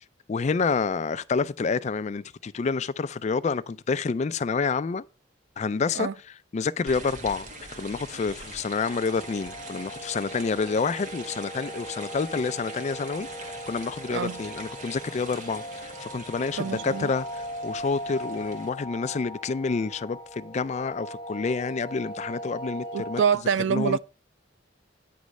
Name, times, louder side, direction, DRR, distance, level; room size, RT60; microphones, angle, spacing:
voice 1, 0.3-5.0 5.6-6.1 6.5-7.5 7.8-13.3 13.7-23.2 23.7-24.0, left 4 dB, 40° left, 0.4 m, -28 dB
sound 1, 6.9-18.7, right 2 dB, 45° right, 1.2 m, -43 dB
sound 2, 8.8-23.3, equal, 25° left, 0.9 m, -39 dB
voice 2, 16.6-17.1 22.9-24.0, right 7 dB, 85° right, 0.4 m, -26 dB
9.3 x 3.1 x 6.2 m
head